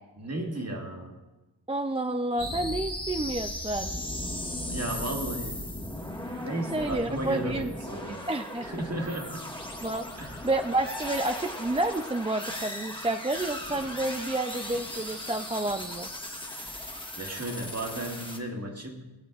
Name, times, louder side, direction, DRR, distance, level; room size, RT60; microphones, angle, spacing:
voice 1, 0.2-1.2 4.7-5.6 6.4-8.2 8.6-9.4 10.2-10.4 17.2-19.0, right 1 dB, 35° right, 1 dB, 1.7 m, -34 dB
voice 2, 1.7-4.0 6.7-7.7 8.1-8.7 9.8-16.1, right 2 dB, 15° right, 7 dB, 0.3 m, -30 dB
sound 1, 2.4-18.4, left 1 dB, 10° left, 1.4 m, -37 dB
21.0 x 7.5 x 2.4 m, 1.1 s
cardioid pair, 45°, 47 cm